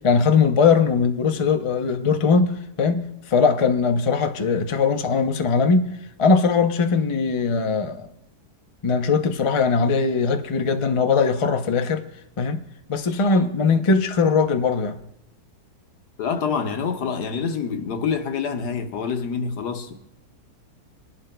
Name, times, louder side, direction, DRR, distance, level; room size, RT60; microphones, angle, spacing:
voice 1, 0.0-5.9 6.2-8.1 8.8-12.1 12.4-12.6 12.9-15.0, left 5 dB, 50° left, 0.3 m, -20 dB
voice 2, 16.2-19.9, left 6 dB, 90° left, 1.6 m, -26 dB
26.0 x 11.0 x 2.2 m
omnidirectional pair, 1.7 m